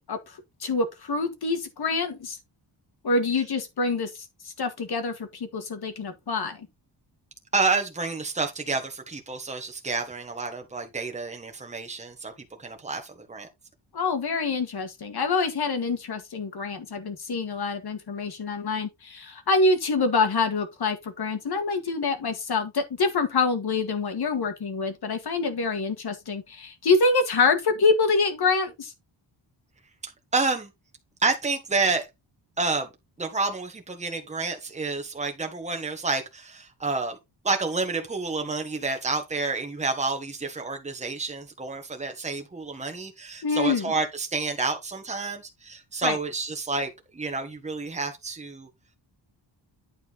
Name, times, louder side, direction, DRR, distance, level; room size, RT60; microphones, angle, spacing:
voice 1, 0.0-2.4 3.0-6.7 13.9-28.9 43.4-43.9 46.0-46.2, left 4 dB, 55° left, 1.9 m, -26 dB
voice 2, 7.5-12.3 12.6-13.5 30.0-30.7 31.2-32.1 32.6-32.9 33.2-37.2 37.4-48.7, right 3 dB, 15° right, 1.4 m, -29 dB
9.4 x 4.5 x 4.0 m
wide cardioid pair, 140°, 45 cm